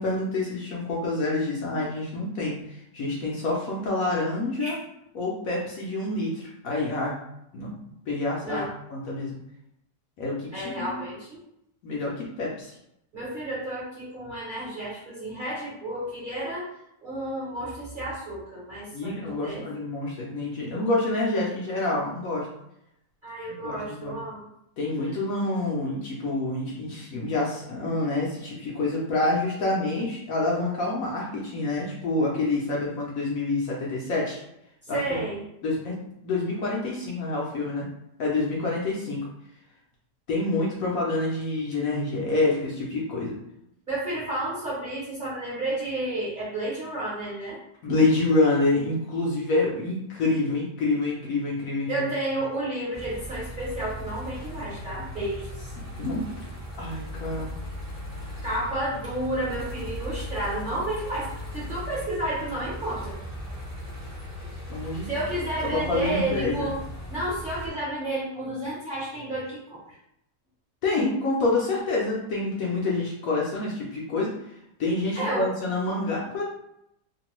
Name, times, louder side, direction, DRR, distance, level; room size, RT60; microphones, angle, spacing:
voice 1, 0.0-4.8 5.1-7.2 7.5-7.7 8.1-9.4 10.2-10.9 11.8-12.7 18.9-22.5 23.6-24.1 24.8-34.4 34.9-35.2 35.6-35.9 36.2-37.9 38.2-39.3 40.3-43.4 47.8-52.0 56.0-56.3 56.8-57.5 64.7-65.1 65.7-66.7 70.8-74.3 74.8-76.4, left 2 dB, 65° left, -4 dB, 0.9 m, -27 dB
voice 2, 10.5-11.4 13.1-16.7 17.0-19.6 23.2-24.5 34.8-35.4 43.9-47.6 51.9-55.7 58.4-63.2 65.1-66.8 67.1-70.0 75.1-75.5, right 1 dB, 40° right, -9 dB, 0.8 m, -31 dB
sound 1, 52.9-67.7, left 1 dB, 20° right, 0.5 m, -38 dB
2.9 x 2.2 x 3.0 m, 0.79 s
omnidirectional pair, 1.8 m